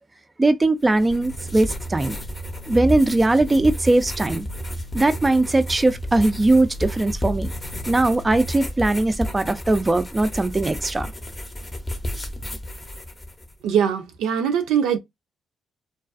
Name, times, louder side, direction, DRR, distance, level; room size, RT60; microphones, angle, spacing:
voice 1, 0.4-2.2 2.7-4.5 4.9-7.5 7.9-11.1, right 2 dB, 20° right, 0.3 m, -20 dB
sound 1, 0.8-13.5, left 1 dB, 20° left, 0.6 m, -33 dB
sound 2, 1.1-8.5, right 1 dB, 60° left, 0.5 m, -35 dB
voice 2, 13.6-15.0, right 8 dB, 90° right, 0.4 m, -21 dB
2.4 x 2.3 x 2.4 m
cardioid pair, 90°, 0 cm